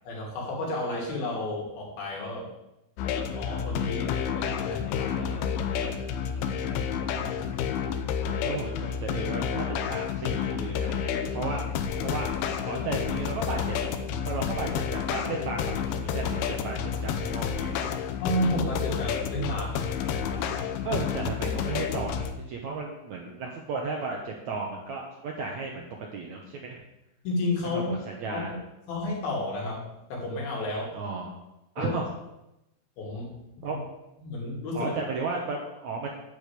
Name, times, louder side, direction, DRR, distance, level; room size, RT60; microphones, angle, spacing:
voice 1, 0.0-2.5 3.3-5.7 18.2-19.9 20.8-21.0 27.2-28.0 28.3-28.6 28.9-31.0 31.8-32.0 33.0-33.3 33.7-33.8 34.2-34.9, left 1 dB, 60° left, -2 dB, 4.3 m, -32 dB
sound 1, 3.0-22.3, left 7 dB, 80° left, 2.5 m, -30 dB
voice 2, 6.5-7.9 8.4-11.6 12.0-12.3 12.6-13.8 14.2-17.9 20.8-25.8 26.1-26.8 27.6-28.5 30.9-31.4 31.7-32.1 33.6-33.8 34.7-36.1, right 4 dB, 90° right, 0 dB, 1.6 m, -34 dB
9.9 x 5.3 x 8.2 m, 0.90 s
omnidirectional pair, 4.9 m